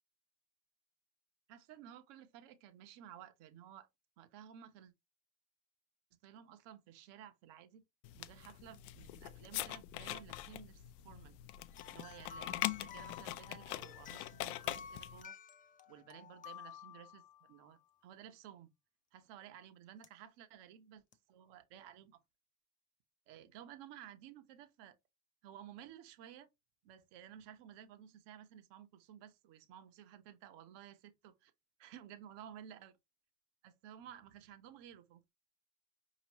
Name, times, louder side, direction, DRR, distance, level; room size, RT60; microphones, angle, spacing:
voice 1, 1.5-3.9 4.2-4.9 6.2-7.8 8.1-11.4 11.9-15.4 15.9-18.7 19.1-21.0 21.3-22.2 23.3-25.0 25.4-26.5 26.8-31.5 31.8-32.9 33.6-35.2, right 10 dB, 60° right, 1.0 m, -55 dB
sound 1, 8.0-15.2, left 15 dB, 70° left, 0.6 m, -43 dB
sound 2, 11.7-17.7 20.0-20.1 21.1-21.2, left 7 dB, 20° left, 0.3 m, -53 dB
5.1 x 3.0 x 2.9 m
hypercardioid pair, 80°, 48 cm